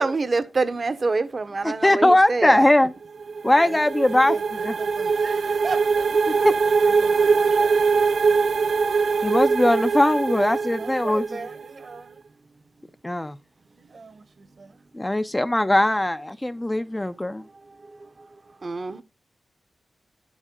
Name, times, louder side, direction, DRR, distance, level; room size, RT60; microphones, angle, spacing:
voice 1, 0.0-2.6 6.4-6.5 18.6-19.0, right 3 dB, 45° right, 0.9 m, -25 dB
voice 2, 1.6-2.9 3.4-4.4 4.6-4.7 6.4-6.6 9.2-11.2 13.0-13.4 14.9-17.4, left 1 dB, 15° left, 0.5 m, -20 dB
sound 1, 3.0-11.7, right 5 dB, 85° right, 0.6 m, -22 dB
voice 3, 4.1-6.1 6.6-8.4 10.7-12.2 13.8-14.8, right 4 dB, 60° right, 1.4 m, -39 dB
11.0 x 7.3 x 3.7 m
wide cardioid pair, 95°, 0 cm